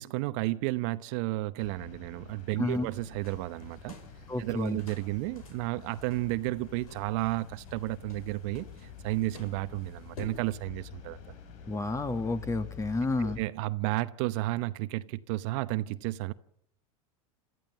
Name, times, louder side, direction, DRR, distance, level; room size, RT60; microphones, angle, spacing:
voice 1, 0.0-4.0 4.4-11.4 13.2-16.3, right 18 dB, 60° right, 0.8 m, -32 dB
Suburbs-Helsinki-spring, 1.6-13.4, left 7 dB, 65° left, 4.5 m, -48 dB
sound 1, 3.2-10.4, left 2 dB, 85° left, 5.4 m, -51 dB
voice 2, 4.3-4.8 11.7-13.4, left 2 dB, 15° left, 1.6 m, -30 dB
28.5 x 14.0 x 7.4 m
hypercardioid pair, 105°, 18 cm